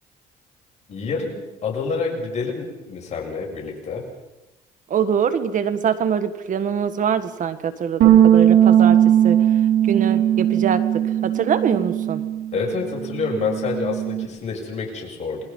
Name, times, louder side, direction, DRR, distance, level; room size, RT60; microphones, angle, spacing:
voice 1, 0.9-4.0 12.5-15.4, left 4 dB, 40° left, -1 dB, 7.5 m, -27 dB
voice 2, 4.9-9.0 9.2-9.4 9.9-12.2, right 7 dB, 50° right, 12 dB, 1.8 m, -23 dB
sound 1, 8.0-12.6 12.8-14.3, right 10 dB, 85° right, 4.7 m, -18 dB
28.5 x 20.5 x 5.6 m, 1.0 s
cardioid pair, 110°, 17 cm